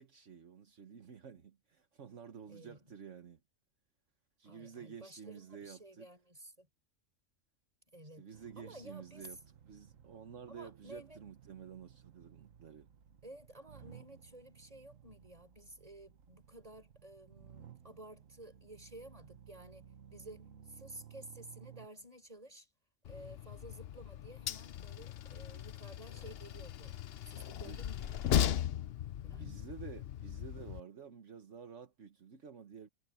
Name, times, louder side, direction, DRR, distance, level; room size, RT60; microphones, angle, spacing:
voice 1, 0.0-3.4 4.4-6.1 8.0-12.9 27.6-27.8 29.4-32.9, right 7 dB, 70° right, 1.5 m, -51 dB
voice 2, 2.5-2.8 4.4-6.7 7.9-8.3 8.6-9.3 10.5-11.2 13.2-19.8 20.1-22.7 23.1-27.0 27.3-28.7 29.2-29.6, right 1 dB, 30° right, 5.6 m, -53 dB
sound 1, 8.3-21.9, right 9 dB, 85° right, 1.6 m, -58 dB
Train, 23.1-30.8, left 10 dB, 60° left, 0.8 m, -37 dB
omnidirectional pair, 1.3 m